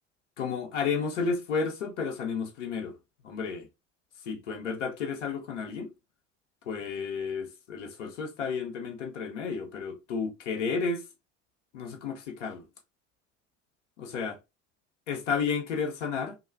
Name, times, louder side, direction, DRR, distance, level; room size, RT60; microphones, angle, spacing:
voice 1, 0.4-2.9 3.2-3.7 4.3-5.9 6.7-11.1 11.7-12.6 14.0-14.4 15.1-16.3, left 5 dB, 80° left, 0.9 m, -32 dB
3.2 x 2.3 x 3.2 m
hypercardioid pair, 70°, 36 cm